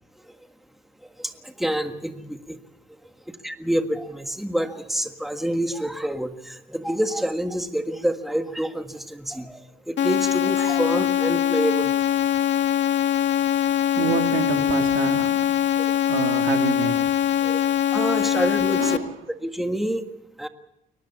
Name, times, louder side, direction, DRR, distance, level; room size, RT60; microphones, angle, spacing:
voice 1, 1.2-2.6 3.4-9.6 9.9-11.9 15.8-15.9 17.4-17.6 17.9-19.0 19.4-20.0 20.4-20.5, right 1 dB, ahead, 7 dB, 1.7 m, -27 dB
sound 1, 10.0-19.0, left 11 dB, 65° left, 1.4 m, -22 dB
voice 2, 13.7-15.4 16.1-17.5 18.8-19.0, right 8 dB, 85° right, 5 dB, 2.5 m, -28 dB
23.0 x 18.5 x 7.0 m, 0.84 s
cardioid pair, 90°, 20 cm